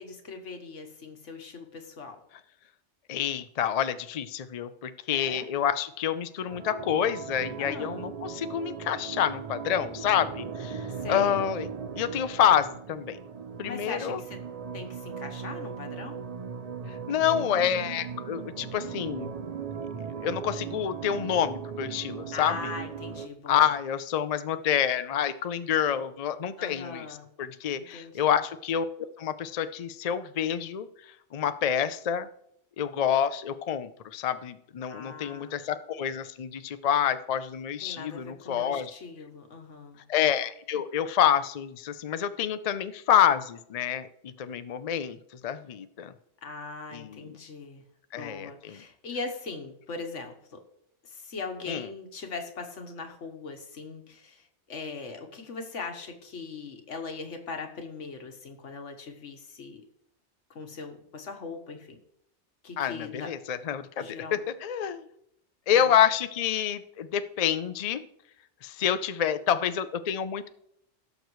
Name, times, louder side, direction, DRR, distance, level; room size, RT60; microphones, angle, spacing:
voice 1, 0.0-2.2 5.1-5.5 7.6-8.1 11.0-11.4 13.6-14.4 14.7-16.3 22.3-23.6 26.6-27.3 27.8-28.3 34.9-35.6 37.8-40.0 46.4-47.8 48.2-50.6 51.0-59.8 60.5-62.0 62.6-63.3 64.0-64.4 65.7-66.0, left 4 dB, 80° left, 5 dB, 1.5 m, -40 dB
voice 2, 3.1-11.7 12.0-13.2 13.6-14.2 16.9-19.3 20.2-22.7 23.5-27.1 27.4-28.9 29.2-30.9 31.3-32.3 32.8-38.9 40.1-45.2 45.4-46.1 46.9-47.4 48.1-48.8 51.7-51.9 62.8-65.1 65.7-68.0 68.6-70.5, left 9 dB, 50° left, 11 dB, 0.4 m, -28 dB
sound 1, 6.5-23.3, right 6 dB, 45° right, 0.5 m, -38 dB
16.5 x 6.6 x 3.1 m, 0.73 s
omnidirectional pair, 1.2 m